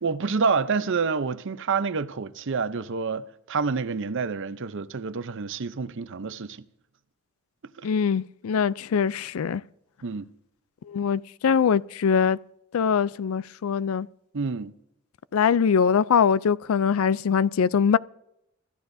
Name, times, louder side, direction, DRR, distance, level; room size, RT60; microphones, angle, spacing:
voice 1, 0.0-6.6 7.8-7.9 10.0-10.3 14.3-14.8, right 5 dB, 65° right, 0.7 m, -28 dB
voice 2, 7.8-9.6 10.9-12.4 12.7-14.1 15.3-18.0, left 6 dB, 85° left, 0.4 m, -22 dB
25.5 x 13.5 x 2.7 m
head